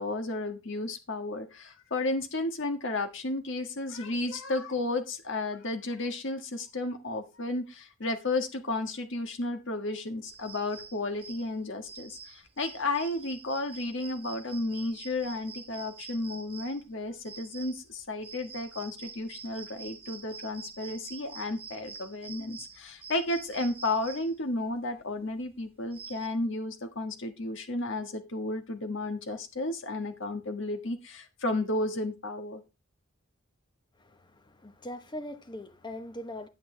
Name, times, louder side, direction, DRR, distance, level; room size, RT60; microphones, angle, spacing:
voice 1, 0.0-32.6, left 2 dB, 60° left, 1.5 m, -33 dB
sound 1, 10.3-26.3, right 5 dB, 30° right, 1.2 m, -47 dB
voice 2, 34.0-36.5, left 1 dB, 20° left, 1.0 m, -41 dB
9.3 x 8.6 x 3.3 m
head